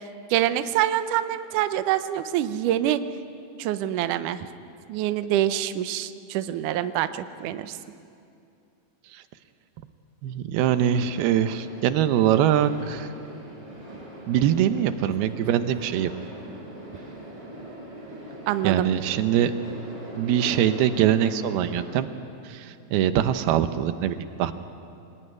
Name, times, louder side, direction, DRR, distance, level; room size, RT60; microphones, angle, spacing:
voice 1, 0.3-3.0 3.6-4.5 4.9-7.8 18.5-18.9, right 12 dB, 70° right, 11 dB, 2.1 m, -25 dB
voice 2, 10.2-13.1 14.3-16.1 18.6-19.5 20.2-22.1 22.4-24.5, right 10 dB, 90° right, 10 dB, 2.9 m, -23 dB
sound 1, 10.6-21.8, right 1 dB, 35° right, 5.8 m, -41 dB
25.0 x 20.0 x 9.6 m, 2.5 s
omnidirectional pair, 4.3 m